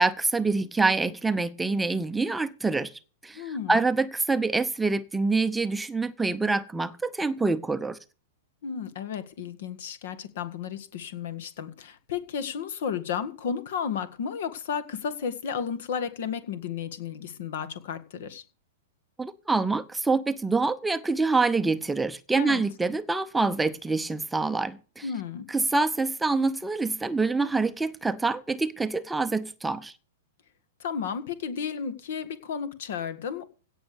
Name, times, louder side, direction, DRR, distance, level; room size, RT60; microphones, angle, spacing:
voice 1, 0.0-2.9 3.2-8.0 19.2-25.1 25.5-29.9, right 3 dB, 5° right, 0.8 m, -26 dB
voice 2, 3.3-3.8 8.6-18.4 22.4-22.6 25.0-25.5 30.8-33.5, left 7 dB, 60° left, 1.8 m, -33 dB
17.0 x 6.4 x 6.9 m
figure-of-eight pair, 105°, 0 cm